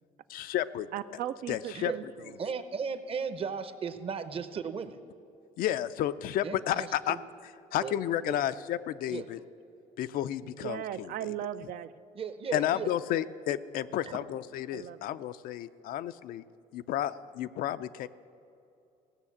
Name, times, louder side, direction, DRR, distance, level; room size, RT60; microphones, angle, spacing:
voice 1, 0.3-0.9 1.5-1.9 5.6-7.2 7.7-9.4 10.0-11.1 12.5-16.4 16.7-18.1, left 12 dB, 75° left, 13 dB, 0.4 m, -32 dB
voice 2, 0.9-2.4 10.4-11.9 14.7-15.0, right 11 dB, 70° right, 12 dB, 0.5 m, -38 dB
voice 3, 2.4-5.0 6.4-7.2 7.8-7.9 8.2-8.3 9.1-9.2 12.1-13.2 14.1-14.2, right 6 dB, 40° right, 11 dB, 0.8 m, -36 dB
16.0 x 6.5 x 8.4 m, 2.7 s
cardioid pair, 115°, 15 cm